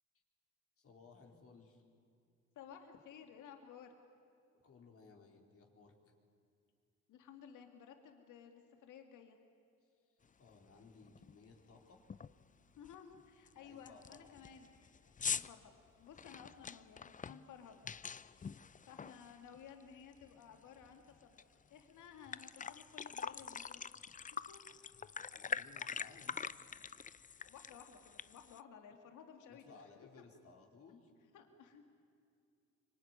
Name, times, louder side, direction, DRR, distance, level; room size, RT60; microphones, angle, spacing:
voice 1, 0.8-1.8 4.6-6.0 9.8-12.0 13.5-14.5 15.1-15.4 18.4-18.5 24.7-26.5 29.5-31.1, left 4 dB, 50° left, 1 dB, 4.3 m, -61 dB
voice 2, 2.6-3.9 7.1-9.4 12.7-14.7 15.3-17.9 18.2-18.4 18.9-21.4 21.7-24.6 25.5-25.6 27.4-29.9 31.3-32.0, left 7 dB, 80° left, 5 dB, 2.4 m, -56 dB
sound 1, 10.5-10.6 11.0-11.3 11.6-11.7 12.1-12.4 12.8-12.9 13.5-13.6 13.9-19.8 20.1-21.4 21.8-21.9 22.1-28.6, left 6 dB, 25° left, 0.6 m, -44 dB
25.0 x 23.5 x 9.7 m, 2.4 s
cardioid pair, 90°, 30 cm